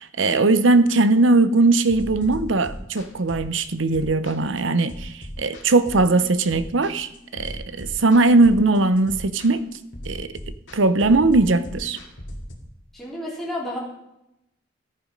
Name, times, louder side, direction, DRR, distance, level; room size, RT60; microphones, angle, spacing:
voice 1, 0.0-9.7 10.1-10.3 10.7-12.0, right 3 dB, 75° right, 13 dB, 0.8 m, -19 dB
sound 1, 1.9-12.5, equal, 65° left, 2.6 m, -38 dB
voice 2, 12.9-13.8, left 1 dB, ahead, -6 dB, 3.5 m, -31 dB
14.0 x 10.5 x 5.3 m, 0.84 s
head